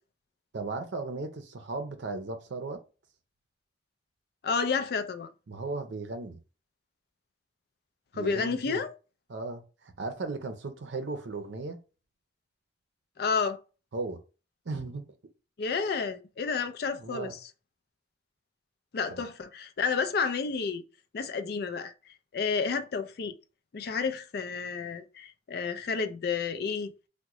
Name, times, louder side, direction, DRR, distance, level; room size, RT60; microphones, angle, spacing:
voice 1, 0.5-2.8 5.5-6.4 8.1-8.8 9.3-11.8 13.9-14.2 14.7-15.0 16.9-17.3 19.1-19.2, right 3 dB, 80° right, 0.6 m, -36 dB
voice 2, 4.4-5.3 8.1-8.9 13.2-13.6 15.6-17.5 18.9-20.8 21.1-21.9 22.3-23.4 23.7-26.9, left 5 dB, 55° left, 0.4 m, -30 dB
3.6 x 2.1 x 2.9 m
head